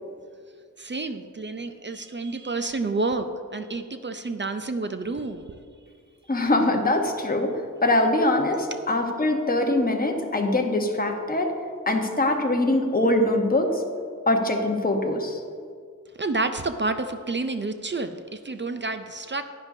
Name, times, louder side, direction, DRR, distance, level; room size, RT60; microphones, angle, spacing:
voice 1, 0.8-5.6 16.2-19.4, right 3 dB, 35° right, 8 dB, 0.4 m, -29 dB
voice 2, 6.3-11.5 11.9-13.8 14.3-15.4, left 2 dB, 25° left, 2 dB, 1.0 m, -23 dB
11.0 x 9.8 x 2.7 m, 2.1 s
wide cardioid pair, 90°, 33 cm